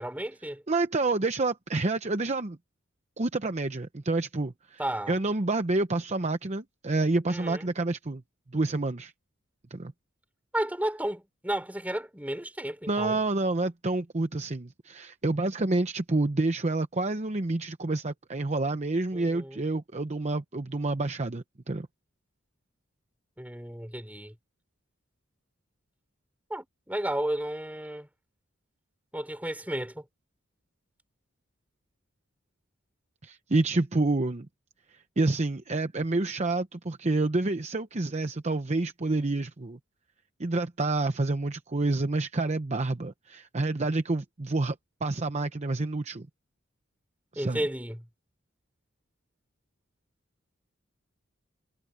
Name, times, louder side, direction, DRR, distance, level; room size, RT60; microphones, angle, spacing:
voice 1, 0.0-0.6 4.8-5.1 7.3-7.7 10.5-13.2 19.1-19.6 23.4-24.3 26.5-28.1 29.1-30.0 47.4-48.0, right 1 dB, 10° right, 5.4 m, -33 dB
voice 2, 0.7-2.6 3.2-4.8 5.1-8.2 8.5-9.1 9.7-9.9 12.9-21.9 33.2-34.5 34.9-39.8 40.4-44.8 45.0-46.3 47.3-47.6, right 2 dB, 35° right, 0.8 m, -28 dB
head